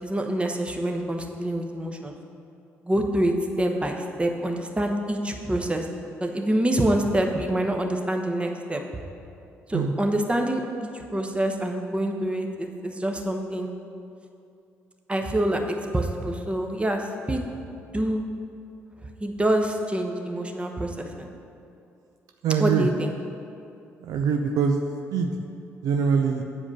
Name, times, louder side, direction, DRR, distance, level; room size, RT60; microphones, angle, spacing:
voice 1, 0.0-2.2 2.8-5.9 6.2-8.8 9.7-13.7 15.1-17.4 17.9-18.2 19.2-21.3 22.6-23.1, right 1 dB, 15° right, 3 dB, 1.0 m, -26 dB
voice 2, 22.4-22.9 24.0-24.8 25.1-25.4 25.8-26.4, right 6 dB, 60° right, 4 dB, 0.5 m, -23 dB
8.3 x 4.9 x 6.4 m, 2.6 s
hypercardioid pair, 45°, 7 cm